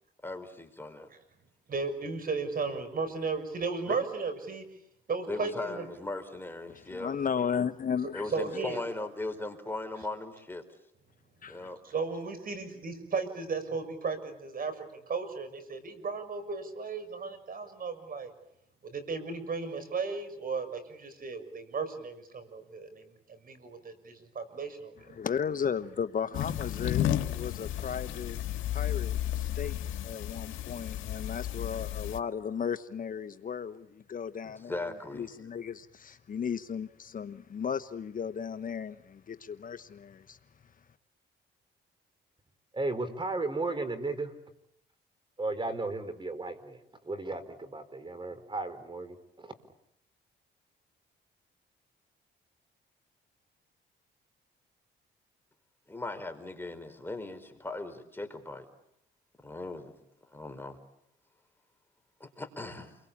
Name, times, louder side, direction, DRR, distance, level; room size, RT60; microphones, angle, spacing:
voice 1, 0.2-1.1 3.9-4.0 5.3-7.2 8.1-10.6 11.5-11.8 34.4-35.3 55.9-58.7 59.4-60.0 60.3-60.8 62.2-63.0, left 2 dB, 10° left, 4.6 m, -38 dB
voice 2, 1.7-4.6 5.1-5.9 8.3-8.8 11.8-18.3 18.9-23.0 23.4-25.1, right 4 dB, 45° right, 6.4 m, -35 dB
voice 3, 6.9-8.3 11.4-11.7 25.1-28.4 28.7-29.8 30.0-40.4, left 7 dB, 45° left, 1.1 m, -35 dB
sound 1, 26.3-32.2, left 12 dB, 80° left, 1.9 m, -33 dB
voice 4, 42.7-44.3 45.4-46.8 47.0-49.5, right 2 dB, 25° right, 4.4 m, -34 dB
29.5 x 23.0 x 8.7 m
cardioid pair, 90°, 20 cm